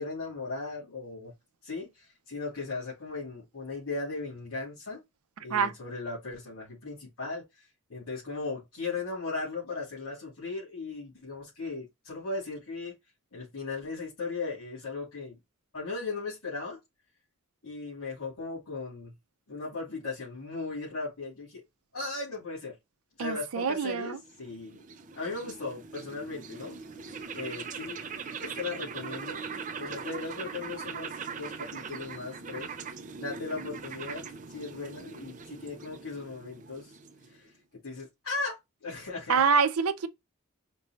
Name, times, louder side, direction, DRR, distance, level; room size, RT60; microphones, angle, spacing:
voice 1, 0.0-1.3 1.6-5.0 5.4-12.9 13.3-15.4 15.7-16.8 17.6-19.1 19.5-21.6 21.9-22.8 23.2-24.8 25.1-26.8 27.3-28.1 28.4-29.4 29.7-32.7 33.2-34.2 34.5-36.9 37.3-37.5 37.8-39.4, left 3 dB, 85° left, 2.9 m, -37 dB
voice 2, 23.2-24.2 39.3-40.1, right 5 dB, 80° right, 0.6 m, -25 dB
sound 1, 24.1-37.5, right 5 dB, 35° right, 0.5 m, -41 dB
5.2 x 2.6 x 3.1 m
head